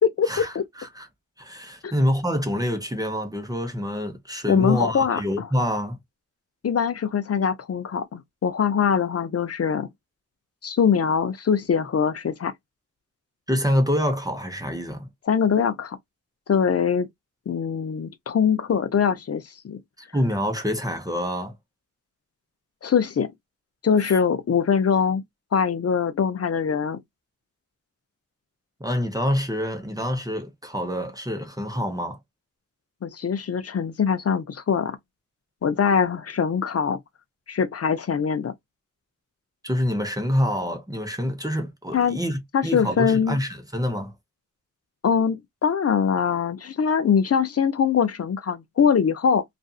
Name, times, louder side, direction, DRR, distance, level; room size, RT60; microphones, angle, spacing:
voice 1, 0.3-1.1 1.4-6.0 13.5-15.1 20.0-21.5 24.1-24.2 28.8-32.2 39.6-44.1, equal, 10° right, 0.8 m, -26 dB
voice 2, 4.5-5.5 6.6-9.9 10.6-12.5 15.3-16.0 16.5-17.1 17.5-19.8 22.8-23.3 23.8-25.2 25.5-27.0 33.0-35.0 35.6-37.0 37.5-38.5 41.9-42.2 42.5-43.4 45.0-49.4, left 6 dB, 50° left, 0.5 m, -22 dB
2.5 x 2.5 x 2.3 m
cardioid pair, 65°, 33 cm